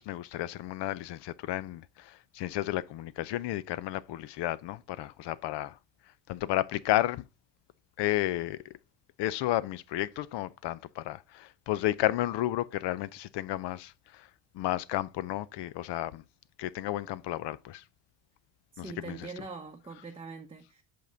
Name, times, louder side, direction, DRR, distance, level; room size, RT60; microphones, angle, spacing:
voice 1, 0.0-5.8 6.3-7.2 8.0-8.7 9.2-14.3 14.5-16.2 16.6-17.8 18.8-19.3, left 15 dB, 70° left, 0.6 m, -32 dB
voice 2, 18.7-20.8, right 4 dB, 15° right, 0.7 m, -43 dB
6.0 x 5.3 x 3.8 m
cardioid pair, 100°, 44 cm